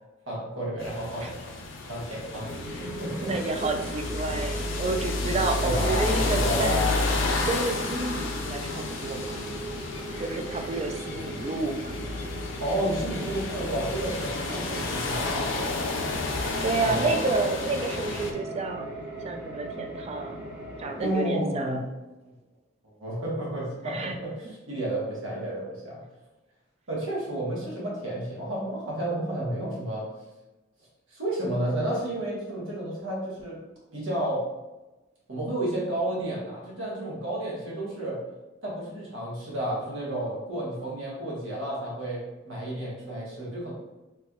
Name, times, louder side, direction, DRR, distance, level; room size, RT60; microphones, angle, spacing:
voice 1, 0.3-1.3 1.6-2.5 2.8-3.3 5.6-7.0 12.6-15.8 16.8-17.5 21.0-21.9 23.0-26.0 26.9-30.0 31.1-33.6 33.9-34.4 35.3-38.2 38.6-43.7, right 1 dB, 90° right, -5 dB, 1.3 m, -31 dB
sound 1, 0.8-18.3, left 3 dB, 70° left, 0.5 m, -31 dB
sound 2, 2.4-21.2, right 1 dB, 10° right, 1.0 m, -38 dB
voice 2, 3.2-6.8 7.5-9.6 10.2-12.0 16.6-18.9 19.2-20.4 20.8-21.8 23.8-24.2, right 3 dB, 30° right, 4 dB, 0.3 m, -30 dB
3.3 x 3.0 x 2.4 m, 1.1 s
head